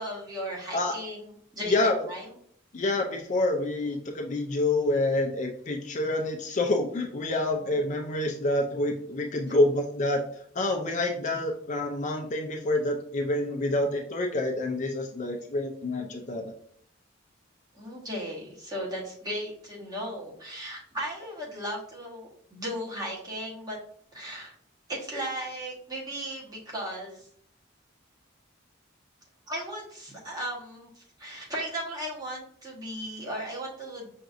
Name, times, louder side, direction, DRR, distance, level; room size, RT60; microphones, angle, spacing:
voice 1, 0.0-2.3 9.5-9.6 17.7-23.8 24.1-24.5 24.9-27.3 29.5-34.1, equal, 20° right, -4 dB, 1.1 m, -36 dB
voice 2, 1.7-2.0 2.7-10.2 10.5-16.5, left 2 dB, 35° left, 3 dB, 0.4 m, -27 dB
5.7 x 2.5 x 2.5 m, 0.64 s
head